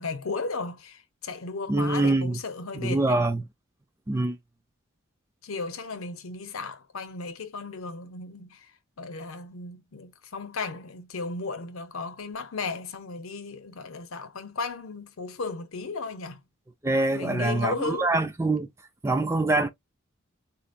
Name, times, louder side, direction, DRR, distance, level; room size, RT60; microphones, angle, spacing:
voice 1, 0.0-3.3 5.4-8.7 9.0-16.4 17.1-18.1, left 4 dB, 85° left, 0.7 m, -35 dB
voice 2, 1.7-2.4 2.8-3.4 4.1-4.4 16.8-18.7 19.0-19.7, right 2 dB, 15° right, 0.4 m, -24 dB
4.0 x 2.0 x 2.5 m
head